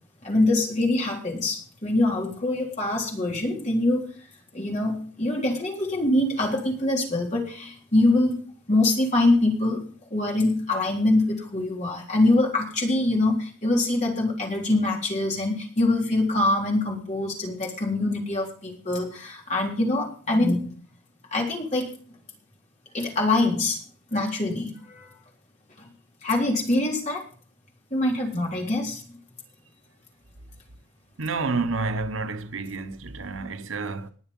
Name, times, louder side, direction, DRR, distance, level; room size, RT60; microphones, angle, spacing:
voice 1, 0.2-4.1 4.5-8.4 8.7-9.8 10.1-20.7 21.3-21.9 22.9-23.8 24.1-25.1 26.2-27.2 27.9-29.0, left 2 dB, 35° left, 3.7 m, -24 dB
voice 2, 31.2-34.1, right 3 dB, 90° right, 1.1 m, -29 dB
20.0 x 7.1 x 5.4 m
head